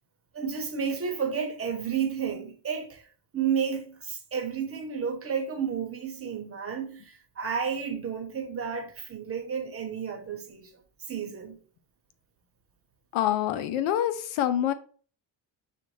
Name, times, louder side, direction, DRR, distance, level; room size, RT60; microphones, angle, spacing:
voice 1, 0.3-3.0 3.3-10.7 11.1-11.6, right 7 dB, 30° right, 1.0 m, -31 dB
voice 2, 13.1-14.7, left 11 dB, 90° left, 0.7 m, -26 dB
6.4 x 2.5 x 3.1 m
cardioid pair, 125°, 47 cm